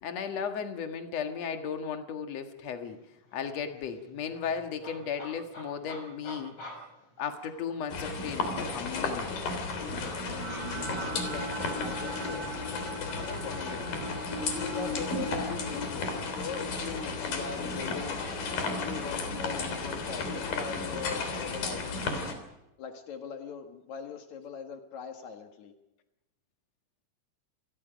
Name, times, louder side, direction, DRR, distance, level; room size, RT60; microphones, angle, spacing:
voice 1, 0.0-3.0 3.3-6.6 7.2-9.4 11.2-11.3, left 7 dB, 65° left, 6 dB, 1.6 m, -35 dB
sound 1, 3.0-3.1 3.3-7.9 8.3-11.1, left 1 dB, 30° left, 6.3 m, -47 dB
sound 2, 7.9-22.3, left 3 dB, 50° left, 4.7 m, -34 dB
sound 3, 9.9-20.1, right 1 dB, 20° right, 4.8 m, -41 dB
voice 2, 11.1-11.5 11.8-12.4 13.1-13.9 14.4-18.3 18.6-22.1 22.8-25.7, left 6 dB, 85° left, 5 dB, 1.6 m, -40 dB
28.0 x 21.0 x 5.2 m, 0.94 s
omnidirectional pair, 5.7 m